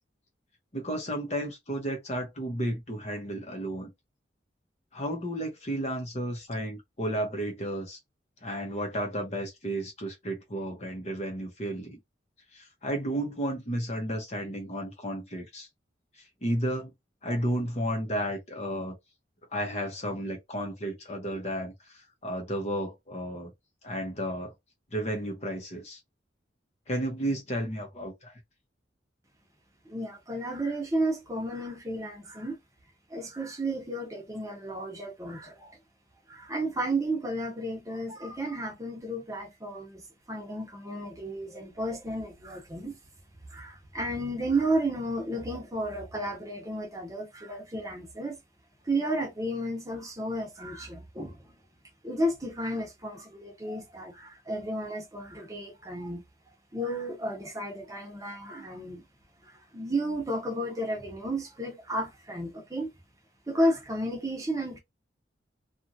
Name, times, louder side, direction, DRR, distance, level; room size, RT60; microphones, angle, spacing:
voice 1, 0.7-3.9 4.9-8.0 8.4-12.0 12.5-15.7 16.4-16.9 17.2-19.0 19.5-23.5 23.8-24.5 24.9-26.0 26.9-28.4, right 1 dB, 35° left, 0.9 m, -33 dB
voice 2, 29.9-32.6 33.1-35.8 36.3-40.0 40.3-42.9 43.5-48.4 48.9-51.4 52.0-56.2 56.7-59.0 59.4-62.9 63.5-64.8, right 1 dB, 20° right, 0.9 m, -32 dB
2.9 x 2.5 x 2.6 m
head